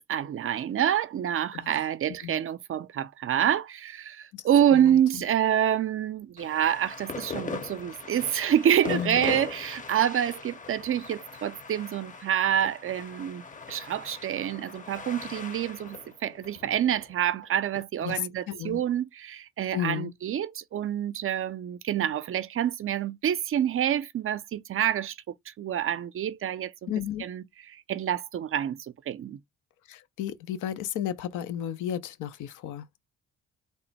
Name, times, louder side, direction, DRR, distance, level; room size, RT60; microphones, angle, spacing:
voice 1, 0.1-26.9 27.2-28.8 29.1-29.4, right 10 dB, 45° right, 0.4 m, -27 dB
voice 2, 1.5-1.8 2.2-2.4 4.3-4.4 4.7-5.2 8.9-9.2 18.0-18.2 18.5-18.8 19.7-20.1 26.9-27.3 29.9-32.9, left 10 dB, 85° left, 0.6 m, -33 dB
sound 1, 6.4-17.8, left 5 dB, 25° left, 0.7 m, -40 dB
3.4 x 2.1 x 4.0 m
cardioid pair, 90°, 30 cm